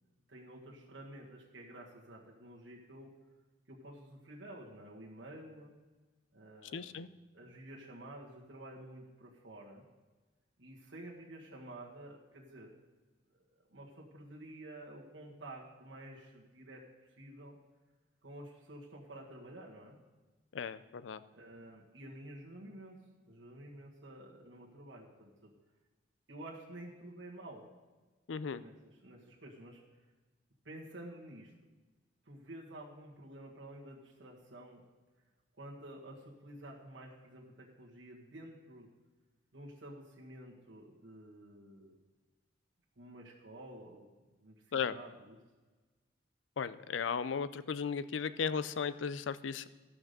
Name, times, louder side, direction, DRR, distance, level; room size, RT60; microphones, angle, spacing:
voice 1, 0.3-3.1 3.7-5.7 6.3-9.8 10.6-12.7 13.3-16.8 17.2-17.6 18.2-20.0 21.3-23.0 23.3-25.5 26.3-27.6 28.6-28.7 29.0-29.8 30.6-31.5 32.2-34.8 35.5-38.9 39.5-41.9 43.0-44.1 44.4-45.4, right 1 dB, 75° right, -3 dB, 1.7 m, -50 dB
voice 2, 6.7-7.1 20.5-21.2 28.3-28.6 44.7-45.0 46.6-49.7, left 6 dB, 85° left, 15 dB, 0.5 m, -36 dB
12.5 x 6.0 x 6.7 m, 1.3 s
head